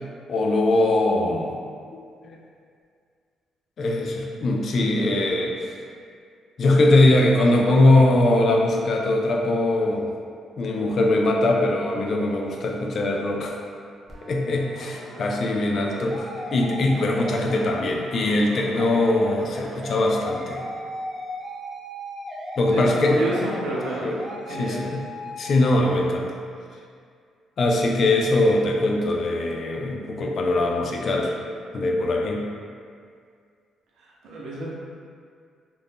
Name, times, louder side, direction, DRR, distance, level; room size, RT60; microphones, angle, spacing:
voice 1, 0.3-1.6 2.2-2.4 3.8-5.7 6.6-10.1 10.6-13.6 14.2-20.6 22.6-23.3 24.0-24.2 24.6-25.0 25.4-26.4 27.6-31.3 31.7-32.4, left 2 dB, 55° left, 0 dB, 0.4 m, -21 dB
sound 1, 14.1-25.4, equal, 25° right, 0.7 m, -37 dB
voice 2, 22.7-24.1 24.5-24.8 34.0-34.7, right 1 dB, 90° right, -5 dB, 0.6 m, -30 dB
2.5 x 2.1 x 3.4 m, 2.2 s
cardioid pair, 90°, 0 cm